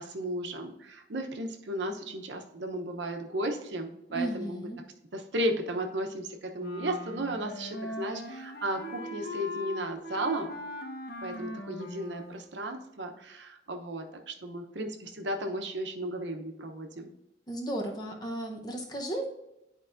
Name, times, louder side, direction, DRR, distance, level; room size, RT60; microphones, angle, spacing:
voice 1, 0.0-4.7 5.1-10.6 11.2-17.1, right 1 dB, 75° right, 3 dB, 0.9 m, -34 dB
voice 2, 4.1-4.8 17.5-19.3, right 1 dB, 20° left, 1 dB, 0.9 m, -34 dB
Wind instrument woodwind instrument, 6.6-12.5, left 1 dB, 55° left, 1.1 m, -40 dB
11.0 x 4.6 x 2.6 m, 0.88 s
head